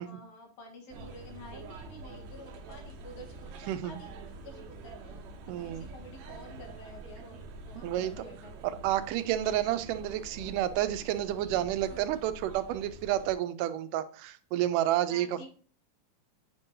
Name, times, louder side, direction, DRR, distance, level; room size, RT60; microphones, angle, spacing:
voice 1, 0.0-8.6 11.9-12.1 15.1-15.5, left 1 dB, 70° left, 2 dB, 2.6 m, -50 dB
sound 1, 0.9-13.3, right 3 dB, 70° right, 1.9 m, -46 dB
voice 2, 3.7-4.0 5.5-5.9 7.8-8.1 8.6-15.5, right 12 dB, 85° right, 11 dB, 2.1 m, -30 dB
7.7 x 5.3 x 2.7 m, 0.42 s
omnidirectional pair, 3.7 m